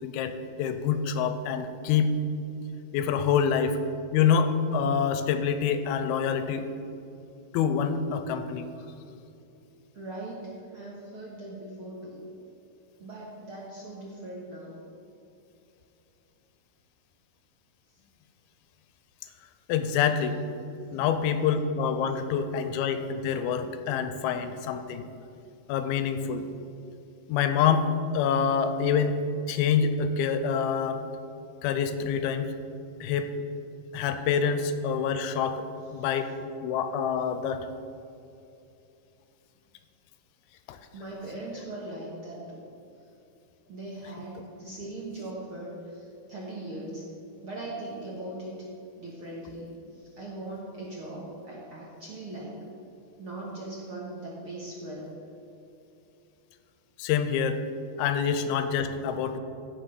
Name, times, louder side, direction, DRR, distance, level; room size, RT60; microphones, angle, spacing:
voice 1, 0.0-2.1 2.9-3.8 4.1-6.7 7.5-8.7 19.7-20.4 20.9-25.0 25.7-26.5 27.3-27.9 28.1-29.2 29.5-31.0 31.6-32.5 33.0-33.3 33.9-35.7 35.9-36.3 36.6-37.7 40.7-40.8 57.0-57.6 58.0-59.4, left 7 dB, 90° left, 9 dB, 2.5 m, -26 dB
voice 2, 9.9-12.2 13.0-14.7 24.0-24.3 40.9-42.6 43.7-47.1 47.4-48.5 49.0-49.8 50.1-52.6 53.2-55.2, right 2 dB, 55° right, -5 dB, 1.6 m, -40 dB
16.0 x 6.0 x 5.3 m, 2.7 s
omnidirectional pair, 4.4 m